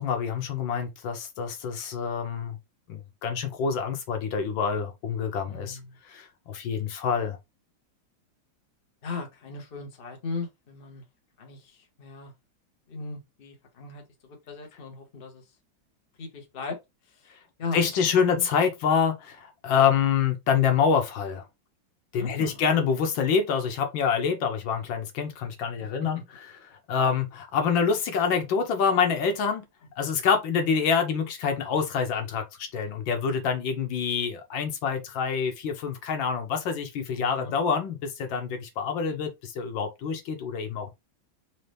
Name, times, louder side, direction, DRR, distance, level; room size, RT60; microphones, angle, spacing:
voice 1, 0.0-2.6 2.9-5.8 6.1-7.4 17.7-21.5 22.1-26.2 26.7-29.7 30.0-40.9, left 6 dB, 75° left, 1.6 m, -26 dB
voice 2, 5.5-6.0 9.0-11.0 11.4-12.3 12.9-15.4 16.2-16.8 17.1-17.3 17.6-17.9 18.3-18.5 22.2-22.6 25.8-25.9 37.1-37.5, left 4 dB, 35° left, 1.0 m, -38 dB
4.3 x 2.8 x 3.2 m
omnidirectional pair, 2.1 m